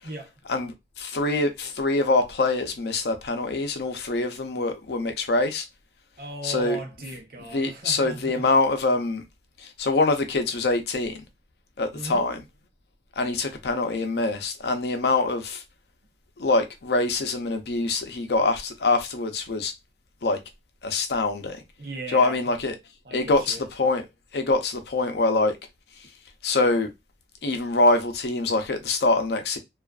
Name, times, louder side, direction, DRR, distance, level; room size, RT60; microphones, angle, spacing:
voice 1, 1.0-5.6 6.4-6.8 7.5-9.2 9.6-11.2 11.8-12.4 13.2-15.6 16.4-19.7 20.2-20.4 20.8-21.6 22.1-22.7 23.1-24.0 24.3-25.6 26.4-26.9 27.4-29.6, left 3 dB, 70° left, 0.5 m, -24 dB
voice 2, 6.2-8.5 11.9-12.3 21.8-22.4 23.0-23.7, right 1 dB, 50° right, 0.6 m, -37 dB
2.4 x 2.3 x 2.3 m
head